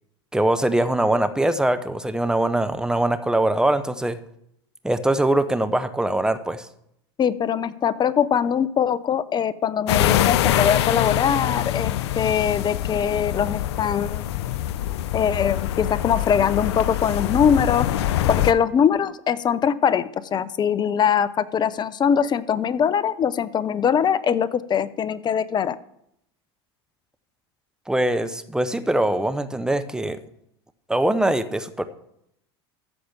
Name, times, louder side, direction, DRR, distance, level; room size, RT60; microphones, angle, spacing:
voice 1, 0.3-4.2 4.8-6.7 27.9-30.2 30.9-31.8, right 1 dB, 5° right, 10 dB, 0.9 m, -22 dB
voice 2, 7.2-14.2 15.1-17.9 18.3-25.7, left 8 dB, 30° left, 17 dB, 0.7 m, -22 dB
sound 1, 9.9-18.5, left 12 dB, 75° left, 0.7 m, -24 dB
14.0 x 5.0 x 7.3 m, 0.76 s
hypercardioid pair, 90°, 14 cm